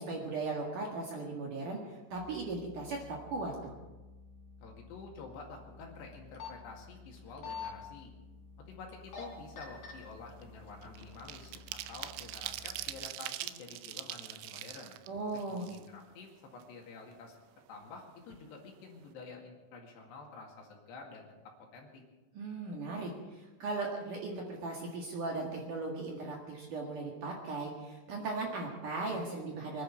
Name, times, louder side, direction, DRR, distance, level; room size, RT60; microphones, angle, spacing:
voice 1, 0.0-3.7 15.1-15.7 22.3-29.8, right 3 dB, 55° right, -1 dB, 2.7 m, -38 dB
sound 1, 2.1-13.0, left 3 dB, 30° right, 4.7 m, -55 dB
voice 2, 4.6-8.1 8.7-11.6 11.9-14.9 15.5-17.4 17.7-21.3 21.6-22.0, left 4 dB, 65° left, 0 dB, 3.9 m, -49 dB
sound 2, 6.1-6.5 7.2-7.7 8.9-9.2 9.6-9.9 10.6-11.1 11.5-11.6, left 7 dB, 45° left, 4.0 m, -41 dB
sound 3, 9.2-9.5 9.8-16.2 16.6-16.7 17.0-18.0 18.3-18.4 18.7-19.0, right 15 dB, 85° right, 3.1 m, -43 dB
24.5 x 11.0 x 4.7 m, 1.2 s
omnidirectional pair, 5.6 m